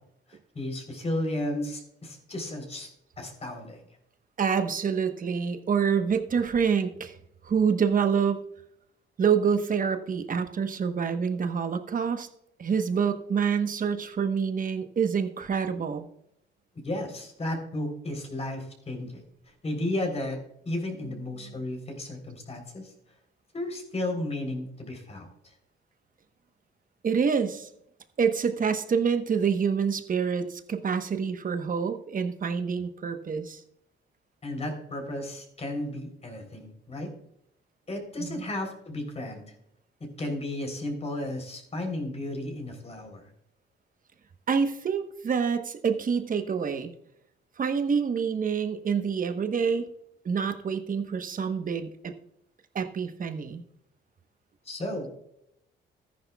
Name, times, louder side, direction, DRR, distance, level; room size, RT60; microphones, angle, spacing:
voice 1, 0.3-3.8 16.8-19.2 19.6-20.4 20.7-22.9 23.5-25.3 34.4-37.1 37.9-39.5 40.2-43.3 54.7-55.1, left 1 dB, 30° left, 4 dB, 3.6 m, -33 dB
voice 2, 4.4-7.2 7.4-8.4 9.2-12.3 12.6-16.1 21.4-21.6 27.0-27.7 28.2-33.6 38.2-38.5 44.5-46.9 47.6-49.9 50.2-52.1 52.7-53.6, right 6 dB, 45° right, 8 dB, 1.1 m, -27 dB
14.0 x 10.5 x 2.3 m, 0.76 s
cardioid pair, 90°, 20 cm